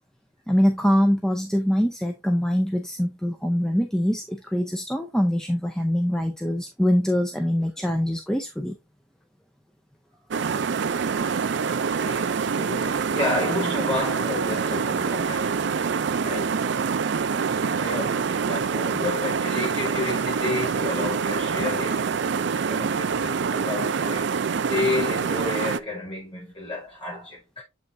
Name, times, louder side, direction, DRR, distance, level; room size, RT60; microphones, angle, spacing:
voice 1, 0.5-8.8, equal, 5° left, 0.5 m, -23 dB
sound 1, 10.3-25.8, right 6 dB, 55° right, 0.4 m, -25 dB
voice 2, 11.9-16.6 17.5-22.1 22.5-24.3 24.7-27.6, left 2 dB, 25° left, 4.7 m, -31 dB
7.6 x 5.5 x 2.6 m
head